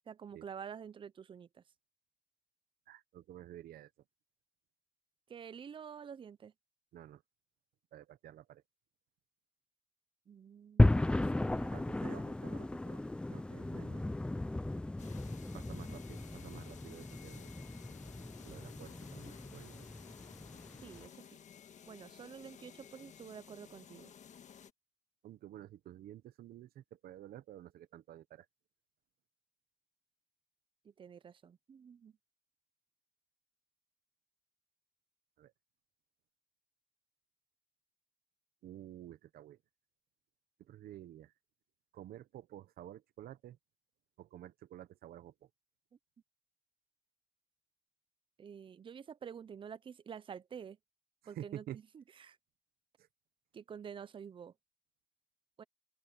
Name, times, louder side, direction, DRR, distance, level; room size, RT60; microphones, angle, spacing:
voice 1, 0.1-1.6 5.3-6.5 10.3-11.7 20.8-21.3 21.9-24.1 30.8-32.2 48.4-50.8 51.3-51.6 51.9-52.4 53.5-54.5 55.6-55.7, right 7 dB, 30° right, 0.6 m, -49 dB
voice 2, 2.9-3.9 6.9-7.2 7.9-8.6 11.7-13.0 13.3-14.1 15.5-17.5 18.4-19.9 25.2-28.5 35.4-35.5 38.6-39.6 40.6-41.3 41.9-43.6 44.2-45.5 51.2-51.8 53.0-53.1, right 12 dB, 65° right, 1.0 m, -51 dB
sound 1, 10.8-21.1, left 2 dB, 5° left, 0.3 m, -35 dB
sound 2, 15.0-24.7, left 8 dB, 45° left, 1.5 m, -55 dB
open air
cardioid pair, 110°, 17 cm